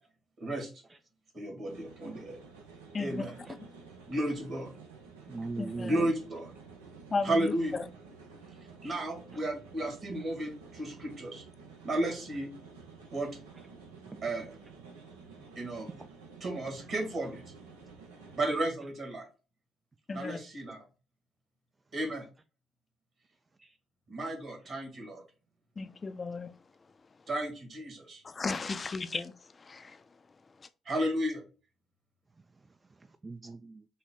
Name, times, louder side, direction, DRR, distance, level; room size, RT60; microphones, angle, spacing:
voice 1, 0.4-0.7 1.3-2.4 3.0-3.3 4.1-4.7 5.8-6.5 7.2-7.8 8.8-11.4 11.8-12.5 13.1-13.3 14.2-14.5 15.6-15.9 16.4-17.4 18.4-19.3 20.1-20.8 21.9-22.3 24.1-25.2 27.3-28.2 30.9-31.4, right 1 dB, 50° right, 2.0 m, -33 dB
sound 1, 1.6-18.7, right 4 dB, 85° right, 0.6 m, -51 dB
voice 2, 2.9-3.3 3.6-3.7 5.6-6.0 7.1-7.8 20.1-20.4 25.8-26.5 28.2-30.0 30.6-30.7, left 4 dB, 35° left, 0.5 m, -35 dB
voice 3, 5.3-6.1 8.8-8.9 14.1-14.2 15.8-16.1 23.6-23.8 32.9-33.9, right 3 dB, 30° right, 0.3 m, -41 dB
5.3 x 2.1 x 3.7 m
hypercardioid pair, 50°, 0 cm